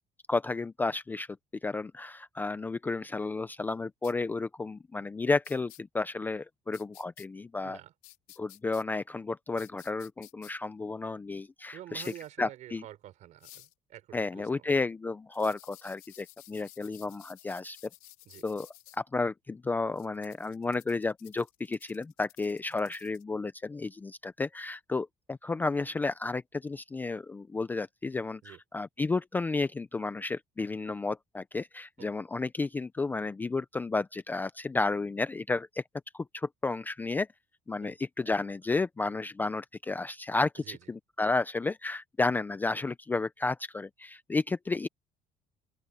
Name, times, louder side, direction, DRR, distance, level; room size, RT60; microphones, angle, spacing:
voice 1, 0.3-1.3 1.6-7.8 8.4-12.8 14.1-17.8 18.4-18.7 19.0-35.8 36.1-37.3 37.7-44.9, left 3 dB, 10° left, 0.4 m, -32 dB
sound 1, 4.0-4.1 5.4-5.8 6.7-7.3 8.0-8.8 9.6-10.5 12.0-12.3 13.4-13.7 15.3-19.0 20.0-23.2, left 16 dB, 80° left, 4.3 m, -54 dB
voice 2, 11.7-14.7 18.2-18.5 28.4-28.6 32.0-32.1 37.8-37.9 40.6-40.8, right 13 dB, 55° right, 4.9 m, -48 dB
open air
cardioid pair, 160°, 15 cm